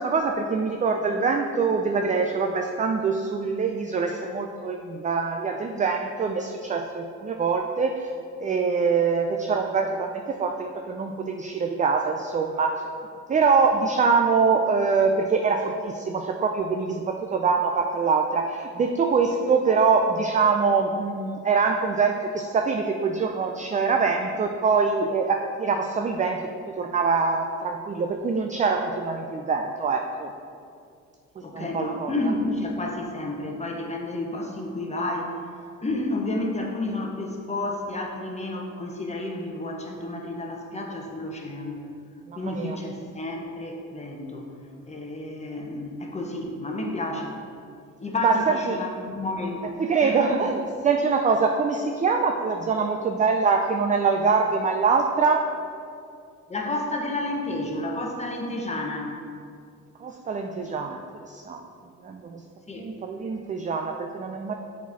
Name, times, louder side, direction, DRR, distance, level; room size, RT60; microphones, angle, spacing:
voice 1, 0.0-8.1 8.4-12.8 13.3-30.3 31.5-32.1 42.3-42.8 48.2-48.4 48.7-48.8 49.8-55.5 60.0-61.6 62.0-62.4 62.8-64.5, right 5 dB, 25° right, 4 dB, 0.4 m, -24 dB
voice 2, 31.4-35.3 35.8-41.9 42.3-44.5 44.9-47.4 48.0-49.6 50.0-50.5 56.5-59.1 62.7-62.9, left 2 dB, 20° left, 0 dB, 1.0 m, -31 dB
7.1 x 4.1 x 4.1 m, 2.3 s
cardioid pair, 90°, 30 cm